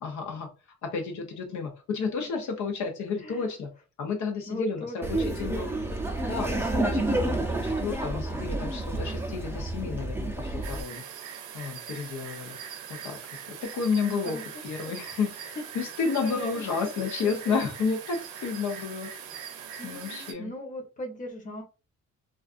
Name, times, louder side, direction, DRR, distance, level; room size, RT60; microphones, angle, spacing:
voice 1, 0.0-3.7 4.0-5.7 6.2-11.0 11.5-12.6 12.9-13.2 13.5-19.3 19.8-20.5, left 5 dB, 70° left, 2 dB, 0.7 m, -31 dB
voice 2, 4.5-5.6 5.9-6.0 14.0-14.4 14.8-14.9 15.6-15.7 16.0-16.4 17.2-17.4 19.8-21.6, left 1 dB, 25° left, 1 dB, 0.9 m, -38 dB
Laughter, 5.0-10.8, right 2 dB, 5° right, 0.5 m, -29 dB
sound 1, 10.6-20.3, right 8 dB, 90° right, 0.5 m, -41 dB
2.4 x 2.4 x 2.4 m, 0.31 s
cardioid pair, 90°, 30 cm